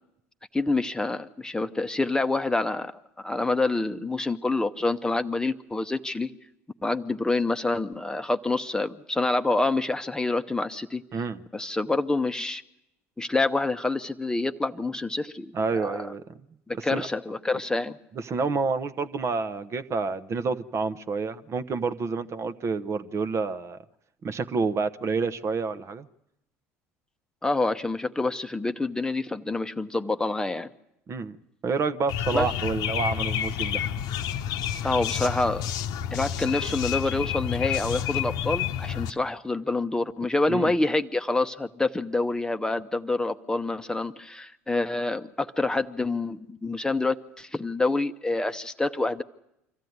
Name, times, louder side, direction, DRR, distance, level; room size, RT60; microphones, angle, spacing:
voice 1, 0.5-2.9 3.2-6.3 6.8-11.0 11.5-12.6 13.2-16.1 16.7-18.0 27.4-30.7 32.3-32.5 34.8-35.6 36.1-49.2, left 2 dB, 10° left, 8 dB, 0.9 m, -27 dB
voice 2, 15.5-16.2 16.8-17.1 18.1-23.8 24.2-26.1 31.1-31.4 31.6-33.8 40.5-40.7, right 4 dB, 40° right, 12 dB, 0.9 m, -28 dB
sound 1, 32.1-39.1, left 9 dB, 60° left, 0.9 m, -29 dB
25.0 x 14.5 x 9.5 m, 0.84 s
hypercardioid pair, 70°, 7 cm